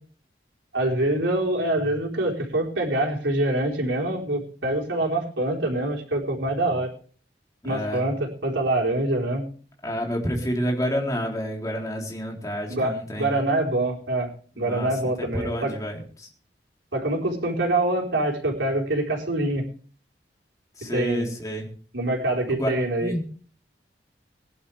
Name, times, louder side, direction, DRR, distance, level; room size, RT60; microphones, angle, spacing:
voice 1, 0.7-6.9 7.6-9.4 12.7-14.3 14.6-15.7 16.9-19.6 20.9-21.3 21.9-23.1, right 1 dB, 90° right, 0 dB, 4.3 m, -25 dB
voice 2, 7.6-8.1 9.8-13.4 14.6-16.3 20.8-21.7 22.5-23.2, equal, 20° left, 0 dB, 3.7 m, -29 dB
22.0 x 11.5 x 3.4 m, 0.42 s
head